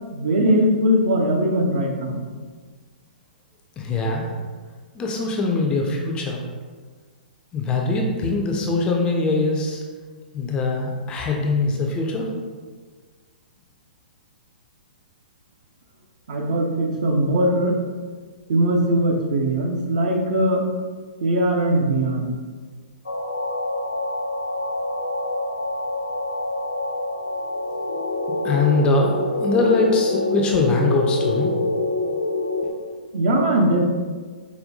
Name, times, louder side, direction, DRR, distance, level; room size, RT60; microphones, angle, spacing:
voice 1, 0.1-2.2 16.3-17.7 18.5-20.6 21.2-22.4 33.1-33.8, right 1 dB, 55° right, 0 dB, 0.7 m, -20 dB
voice 2, 3.8-4.3 4.9-6.4 7.5-9.8 10.3-12.3 28.3-31.5, left 3 dB, 20° left, 0 dB, 0.4 m, -22 dB
sound 1, 23.1-32.7, left 2 dB, 80° left, 0.5 m, -26 dB
5.0 x 2.2 x 2.6 m, 1.5 s
figure-of-eight pair, 115°, 5 cm